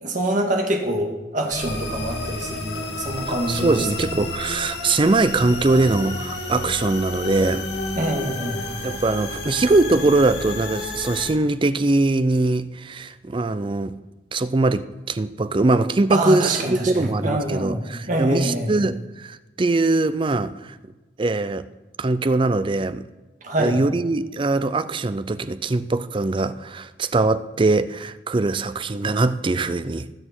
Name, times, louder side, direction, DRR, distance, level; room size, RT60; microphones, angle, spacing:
voice 1, 0.0-3.9 8.0-8.6 16.1-18.7 23.4-23.8, right 1 dB, 45° right, 1 dB, 2.0 m, -25 dB
sound 1, 1.5-11.3, left 2 dB, 65° left, 2.1 m, -31 dB
voice 2, 3.5-7.6 8.8-14.0 14.3-20.8 21.2-21.6 22.0-23.0 23.6-30.1, right 2 dB, 25° right, 14 dB, 0.4 m, -22 dB
19.5 x 6.7 x 4.4 m, 1.1 s
head